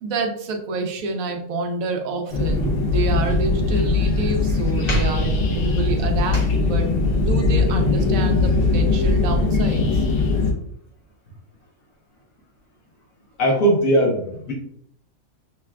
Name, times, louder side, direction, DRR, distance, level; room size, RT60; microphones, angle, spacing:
voice 1, 0.0-6.9 7.1-10.1, right 3 dB, 80° right, 4 dB, 1.1 m, -28 dB
sound 1, 2.3-10.5, left 3 dB, 50° left, 0.8 m, -20 dB
voice 2, 13.4-14.5, right 1 dB, 75° left, -3 dB, 1.3 m, -20 dB
5.8 x 2.3 x 2.2 m, 0.68 s
omnidirectional pair, 1.5 m